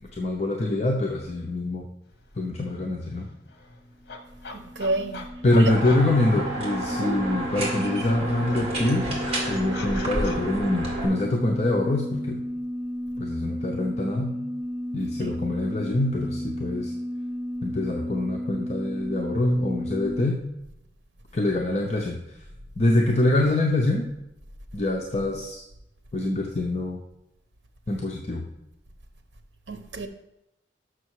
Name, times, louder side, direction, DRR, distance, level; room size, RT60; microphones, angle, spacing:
voice 1, 0.0-1.9 2.4-3.3 5.4-9.1 9.5-12.4 13.2-14.3 14.9-16.9 17.6-20.4 21.3-22.4 22.8-24.1 24.7-25.6 26.1-27.0 27.9-28.5, left 2 dB, 40° left, 0.7 m, -25 dB
sound 1, 2.2-2.3 2.6-7.2 7.5-10.4, left 3 dB, 65° left, 0.9 m, -43 dB
sound 2, 4.1-20.3, equal, 10° right, 0.8 m, -33 dB
voice 2, 4.5-5.3 5.6-5.7 6.9-7.2 15.2-15.4 29.7-30.1, right 2 dB, 75° right, 0.9 m, -29 dB
sound 3, 5.7-11.1, right 1 dB, 35° right, 2.1 m, -31 dB
6.4 x 6.3 x 4.6 m
head